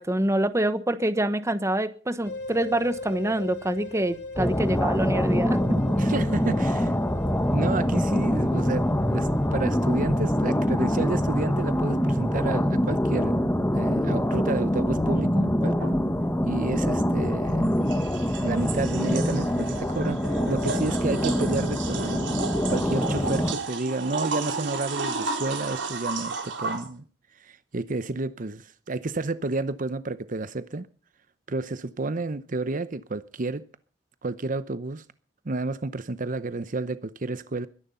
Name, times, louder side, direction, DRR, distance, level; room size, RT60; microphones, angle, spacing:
voice 1, 0.0-5.8, right 1 dB, 15° right, 1.1 m, -26 dB
sound 1, 2.2-12.7, left 2 dB, 65° left, 4.0 m, -41 dB
sound 2, 4.4-23.5, equal, 10° left, 1.4 m, -25 dB
voice 2, 6.0-6.9 7.3-13.4 13.7-15.9 16.4-18.0 18.4-27.0 27.4-30.9 31.5-33.6 34.2-35.0 35.5-37.7, right 3 dB, 45° right, 0.8 m, -31 dB
sound 3, 15.8-16.0 17.6-26.9, right 4 dB, 75° right, 3.6 m, -33 dB
22.0 x 11.0 x 5.6 m
head